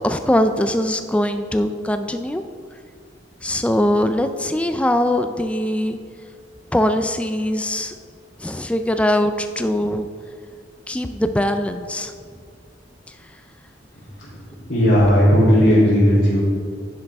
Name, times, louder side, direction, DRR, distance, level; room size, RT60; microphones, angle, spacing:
voice 1, 0.0-2.4 3.4-6.0 6.7-7.9 8.4-10.1 10.9-12.1, left 1 dB, 5° left, 8 dB, 0.3 m, -21 dB
voice 2, 13.9-14.3 14.7-16.4, equal, 70° left, -11 dB, 3.0 m, -15 dB
10.5 x 10.0 x 3.5 m, 2.1 s
head